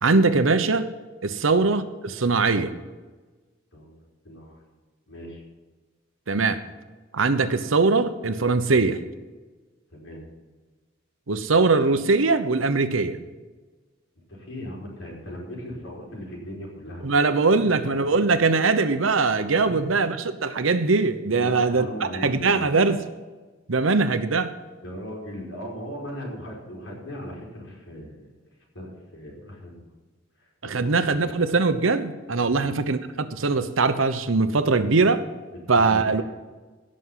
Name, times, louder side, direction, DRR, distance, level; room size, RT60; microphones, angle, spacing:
voice 1, 0.0-0.9 1.2-2.7 6.3-6.6 7.1-9.0 11.3-13.2 17.0-20.2 20.4-21.9 22.2-23.0 23.7-24.5 30.6-35.2 35.7-36.2, right 3 dB, 85° right, 10 dB, 0.9 m, -21 dB
voice 2, 3.7-4.7 5.1-5.4 9.9-10.2 14.3-17.5 19.6-19.7 21.4-22.7 24.8-28.3 28.7-29.9 30.4-31.4 32.5-32.7 35.7-36.2, left 1 dB, 80° left, -3 dB, 4.8 m, -38 dB
17.0 x 6.5 x 5.6 m, 1.3 s
head